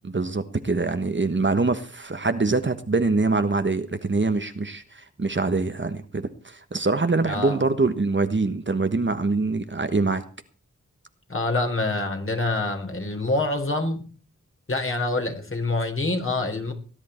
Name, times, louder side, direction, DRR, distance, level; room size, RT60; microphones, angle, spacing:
voice 1, 0.0-10.2, right 3 dB, 40° right, 9 dB, 1.3 m, -24 dB
voice 2, 7.2-7.6 11.3-14.0 14.7-16.7, left 2 dB, 45° left, 4 dB, 3.8 m, -26 dB
19.0 x 10.5 x 4.4 m, 0.38 s
wide cardioid pair, 80°, 30 cm